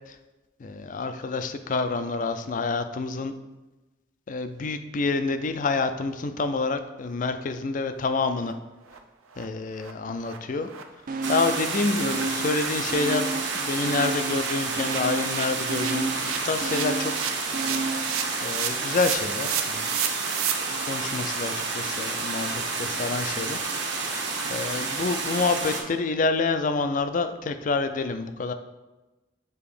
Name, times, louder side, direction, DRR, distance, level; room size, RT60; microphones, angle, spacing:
voice 1, 0.6-3.3 4.3-8.6 9.4-10.7 11.3-13.3 13.5-17.1 17.5-17.8 18.4-19.9 20.9-23.6 24.5-28.5, left 3 dB, 40° left, 9 dB, 0.4 m, -28 dB
sound 1, 7.5-7.6 8.0-8.1 8.4-8.5 8.9-9.0 9.3-9.4 9.7-9.9 10.2-10.4 10.6-20.5, right 8 dB, 85° right, 0.6 m, -34 dB
sound 2, 11.1-11.7 12.0-13.6 13.8-18.2 18.6-18.7, right 3 dB, 40° right, 0.4 m, -32 dB
sound 3, 11.2-25.8, right 4 dB, 60° right, 1.0 m, -30 dB
6.9 x 2.9 x 4.9 m, 1.1 s
head